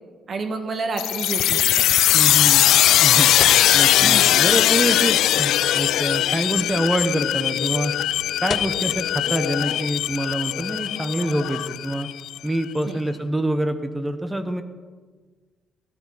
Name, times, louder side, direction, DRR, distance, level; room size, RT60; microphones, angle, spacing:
voice 1, 0.3-1.9 4.0-4.4 12.9-13.0, right 3 dB, 50° right, 5 dB, 2.0 m, -29 dB
sound 1, 1.0-12.4, left 13 dB, 85° left, 0.3 m, -20 dB
voice 2, 2.1-2.7 3.0-3.3 3.7-7.9 8.4-12.1 12.4-14.6, right 1 dB, 10° right, 8 dB, 1.1 m, -26 dB
sound 2, 3.3-9.2, left 6 dB, 50° left, 0.8 m, -37 dB
17.5 x 11.5 x 4.2 m, 1.4 s
cardioid pair, 90°, 0 cm